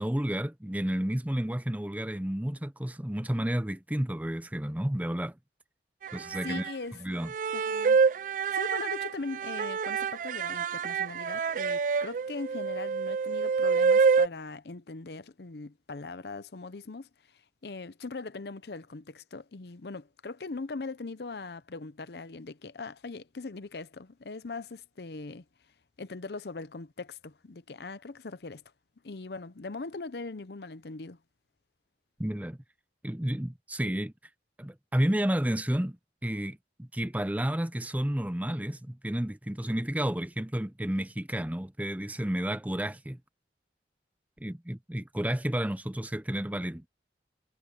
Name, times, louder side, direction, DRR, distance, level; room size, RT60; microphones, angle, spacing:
voice 1, 0.0-5.4 6.1-6.6 7.0-7.3 32.2-32.6 33.0-34.1 34.6-43.2 44.4-46.9, right 1 dB, 10° right, 0.6 m, -31 dB
sound 1, 6.0-6.7 7.3-14.3, right 5 dB, 45° right, 0.3 m, -27 dB
voice 2, 6.4-7.0 7.5-8.0 8.5-17.1 17.6-25.4 26.0-28.6 29.0-31.2, left 3 dB, 65° left, 0.7 m, -40 dB
head